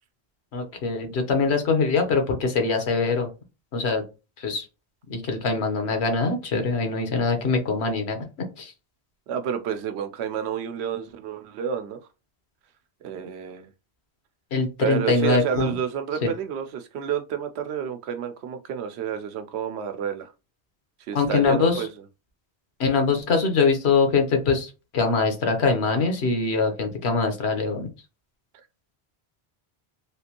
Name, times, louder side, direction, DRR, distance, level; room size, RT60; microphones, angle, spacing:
voice 1, 0.5-3.3 3.7-4.0 4.4-4.7 5.1-8.2 8.6-8.7 14.5-15.8 16.2-16.3 21.1-21.9 22.8-27.9, left 4 dB, 85° left, 1.1 m, -23 dB
voice 2, 9.3-12.0 13.0-13.7 14.8-20.3 21.1-21.9, right 8 dB, 90° right, 0.8 m, -30 dB
3.4 x 2.5 x 2.8 m
omnidirectional pair, 1.1 m